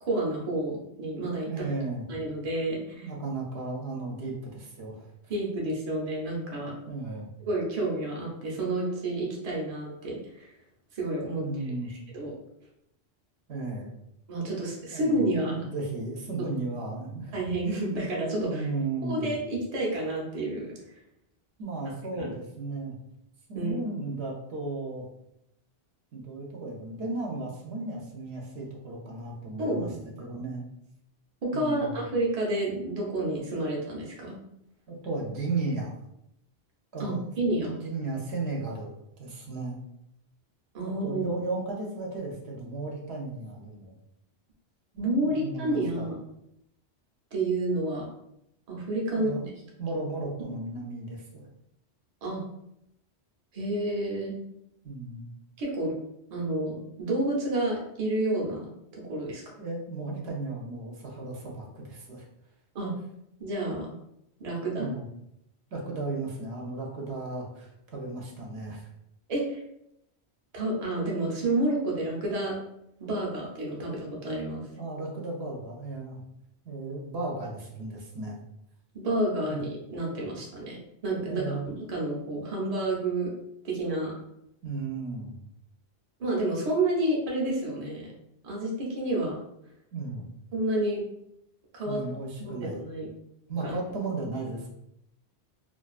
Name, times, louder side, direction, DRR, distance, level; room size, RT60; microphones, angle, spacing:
voice 1, 0.0-1.7 2.1-3.1 5.3-6.7 7.5-10.5 10.9-11.4 12.1-12.3 14.3-15.7 16.4-16.5 17.3-18.7 19.0-20.7 23.5-23.8 29.6-30.0 31.4-34.4 37.0-37.8 40.7-41.4 45.0-46.2 47.3-48.1 48.7-49.5 52.2-52.4 53.5-54.4 55.6-55.9 56.3-59.4 62.7-62.9 63.4-63.9 64.4-64.9 69.3-69.6 70.5-72.6 73.0-74.6 78.9-83.3 83.6-84.1 86.2-88.1 88.4-89.4 90.5-91.0 91.7-92.0 92.4-93.1 93.6-93.7, right 1 dB, 45° right, -3 dB, 0.6 m, -30 dB
voice 2, 1.4-2.0 2.9-5.4 6.9-7.3 11.4-11.9 13.5-13.9 14.9-17.4 18.3-19.3 21.6-23.0 23.5-25.1 26.1-29.9 30.2-30.6 31.5-32.0 34.9-35.9 36.9-37.3 37.6-38.9 39.2-39.8 40.8-43.9 44.9-46.1 49.1-51.5 54.8-55.3 59.6-62.3 64.8-65.0 65.7-68.8 74.7-76.2 76.6-78.4 79.5-79.6 81.3-81.6 84.6-85.4 89.9-90.3 91.9-92.8 93.5-94.7, right 3 dB, 80° right, -1 dB, 0.9 m, -35 dB
2.5 x 2.3 x 2.3 m, 0.80 s
omnidirectional pair, 1.1 m